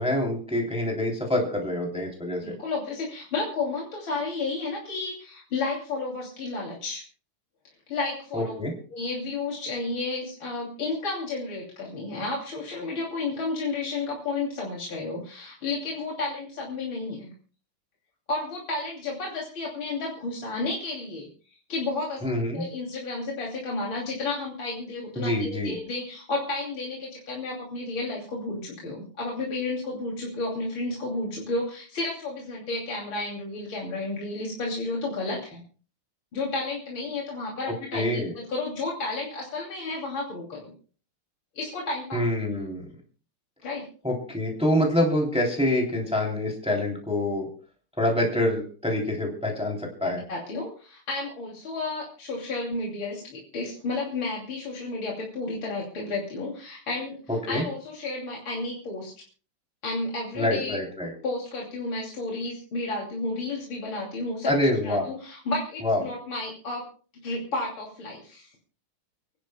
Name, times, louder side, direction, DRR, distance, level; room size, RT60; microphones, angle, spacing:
voice 1, 0.0-2.5 8.3-8.7 22.2-22.6 25.2-25.7 37.9-38.3 42.1-42.8 44.0-47.5 48.0-50.2 57.3-57.6 60.4-61.1 64.4-65.0 65.8-66.0, left 1 dB, 5° right, -1 dB, 3.0 m, -26 dB
voice 2, 2.4-7.0 7.9-8.6 8.9-17.3 18.3-35.6 36.3-40.7 41.6-42.2 43.6-43.9 50.0-59.1 59.8-60.8 61.2-66.9 67.2-68.5, left 3 dB, 65° left, -3 dB, 3.6 m, -32 dB
30.0 x 11.0 x 2.2 m, 0.40 s
omnidirectional pair, 2.4 m